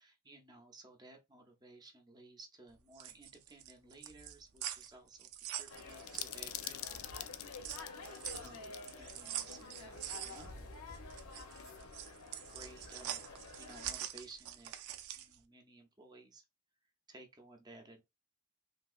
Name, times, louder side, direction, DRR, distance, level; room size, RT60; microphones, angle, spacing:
voice 1, 0.0-8.0 8.3-8.7 9.0-10.7 11.4-11.9 12.5-14.7 15.1-16.4 17.1-18.0, right 2 dB, 20° right, 0.6 m, -57 dB
sound 1, 2.8-6.9 7.3-15.4, right 11 dB, 75° right, 0.4 m, -45 dB
sound 2, 5.7-13.9, left 3 dB, 90° left, 0.9 m, -50 dB
sound 3, 5.7-9.0 9.3-9.4 10.4-11.7, left 12 dB, 70° left, 0.4 m, -47 dB
3.3 x 2.8 x 2.4 m
head